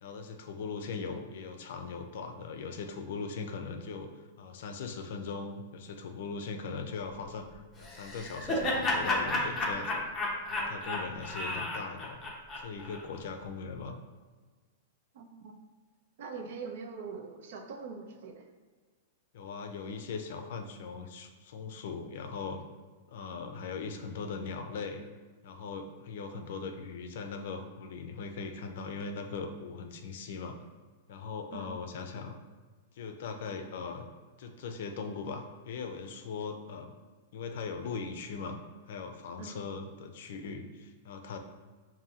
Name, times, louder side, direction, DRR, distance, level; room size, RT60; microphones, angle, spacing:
voice 1, 0.0-4.1 4.4-10.0 10.5-12.2 12.6-14.0 19.3-22.6 23.1-25.0 25.4-30.6 31.1-32.4 33.0-34.1 34.4-36.9 37.3-38.6 38.9-41.4, left 4 dB, 55° left, 5 dB, 0.5 m, -39 dB
Laughter, 7.8-13.0, left 2 dB, 10° left, 0.6 m, -32 dB
voice 2, 15.1-15.5 16.2-18.5 31.5-31.7 39.4-39.5, right 5 dB, 60° right, 4 dB, 0.6 m, -42 dB
5.3 x 2.6 x 2.8 m, 1.4 s
supercardioid pair, 165°, 0 cm